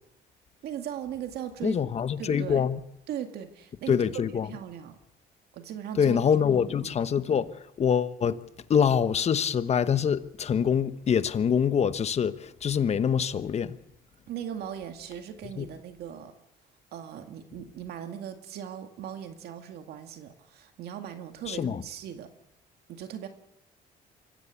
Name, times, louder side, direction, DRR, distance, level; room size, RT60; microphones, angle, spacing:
voice 1, 0.6-1.8 2.2-2.6 3.1-4.0 4.5-5.0 5.5-6.2 6.6-7.0 14.3-16.3 16.9-22.3 22.9-23.3, right 9 dB, 70° right, 2.0 m, -38 dB
voice 2, 1.6-2.8 3.9-4.5 6.0-8.4 8.7-13.8 15.6-15.7 21.5-21.8, left 7 dB, 40° left, 1.1 m, -25 dB
25.0 x 15.5 x 8.4 m
cardioid pair, 110°, 17 cm